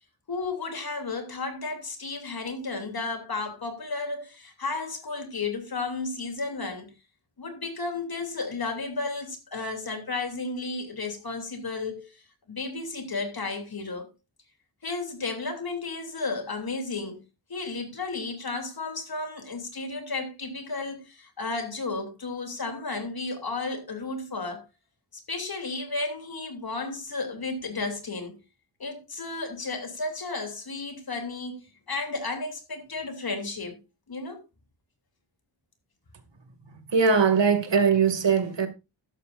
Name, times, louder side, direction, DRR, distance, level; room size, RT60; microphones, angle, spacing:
voice 1, 0.3-6.9 7.4-14.1 14.8-17.2 17.5-24.6 25.1-28.3 28.8-33.8 34.1-34.4, left 3 dB, 55° left, 3.1 m, -33 dB
voice 2, 36.9-38.7, right 5 dB, 70° right, 2.3 m, -21 dB
13.5 x 11.5 x 2.5 m
wide cardioid pair, 140°, 44 cm